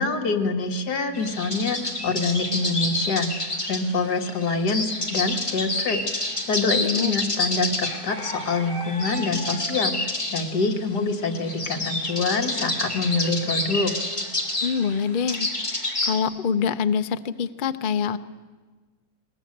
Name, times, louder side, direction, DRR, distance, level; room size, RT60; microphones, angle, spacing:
voice 1, 0.0-3.3 3.6-13.9, left 3 dB, 65° left, 4 dB, 2.3 m, -26 dB
sound 1, 1.1-16.2, left 2 dB, 15° left, 2.3 m, -29 dB
voice 2, 6.7-7.1 14.6-18.2, left 6 dB, 50° left, 10 dB, 0.6 m, -25 dB
20.5 x 19.5 x 8.6 m, 1.4 s
omnidirectional pair, 1.9 m